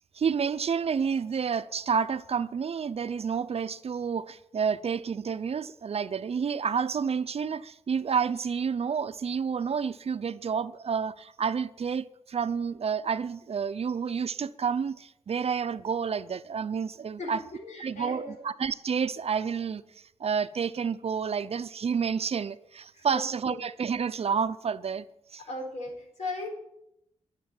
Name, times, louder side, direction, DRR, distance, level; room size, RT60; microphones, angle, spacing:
voice 1, 0.1-17.4 17.8-19.8 20.2-25.1 25.3-25.4, right 6 dB, 55° right, 0.6 m, -29 dB
voice 2, 17.2-18.5 22.9-23.6 25.5-26.5, left 2 dB, 90° left, 4.3 m, -38 dB
12.0 x 7.6 x 9.0 m
wide cardioid pair, 90°, 12 cm